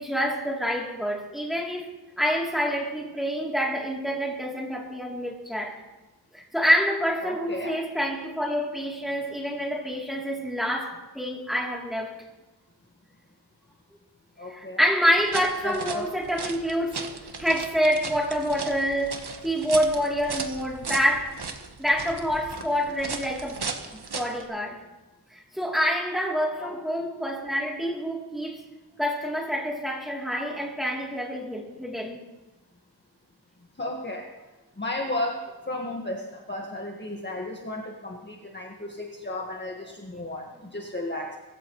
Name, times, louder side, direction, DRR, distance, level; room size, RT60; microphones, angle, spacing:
voice 1, 0.0-1.9 2.2-5.8 6.3-12.1 14.5-17.0 17.4-21.4 21.8-23.6 23.9-24.8 25.3-28.6 29.0-32.2, equal, ahead, -2 dB, 3.2 m, -27 dB
voice 2, 7.2-7.8 14.4-14.8 15.6-16.1 26.6-26.8 33.8-34.3 34.8-41.4, left 1 dB, 25° left, -1 dB, 1.7 m, -34 dB
sound 1, 15.1-24.4, right 4 dB, 70° right, 1.4 m, -37 dB
23.5 x 13.5 x 3.2 m, 1.1 s
wide cardioid pair, 80°, 40 cm